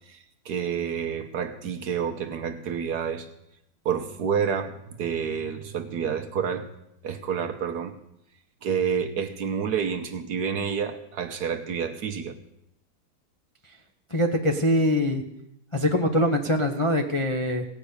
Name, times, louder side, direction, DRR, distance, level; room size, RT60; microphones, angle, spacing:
voice 1, 0.1-3.3 3.8-6.7 7.0-8.0 8.6-12.4, right 7 dB, 60° right, 6 dB, 1.3 m, -29 dB
voice 2, 14.1-15.2 15.7-17.7, left 1 dB, 35° left, 1 dB, 0.5 m, -23 dB
17.5 x 6.1 x 8.4 m, 0.82 s
omnidirectional pair, 2.2 m